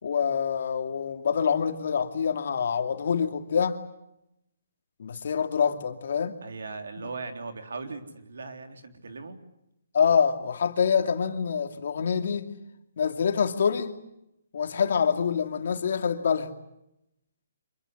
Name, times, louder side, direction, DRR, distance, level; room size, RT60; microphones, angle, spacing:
voice 1, 0.0-3.8 5.0-6.4 9.9-12.5 13.0-13.9 14.5-16.5, left 6 dB, 65° left, 2.5 m, -26 dB
voice 2, 6.4-9.4, right 4 dB, 80° right, 3.6 m, -38 dB
26.0 x 22.5 x 8.0 m
hypercardioid pair, 155°, 0 cm